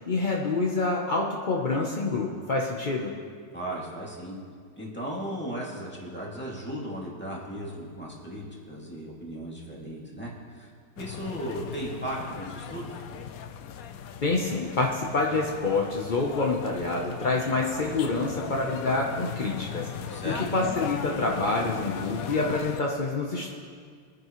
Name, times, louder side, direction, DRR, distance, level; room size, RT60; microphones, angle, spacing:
voice 1, 0.0-3.2 14.2-23.5, left 3 dB, 50° left, -2 dB, 0.5 m, -27 dB
voice 2, 3.5-4.4 4.8-10.7 11.0-13.1 20.1-20.4, right 1 dB, 5° left, -5 dB, 2.2 m, -36 dB
sound 1, 11.0-22.8, left 8 dB, 90° left, 0.7 m, -38 dB
23.5 x 10.0 x 3.1 m, 2.1 s
omnidirectional pair, 2.3 m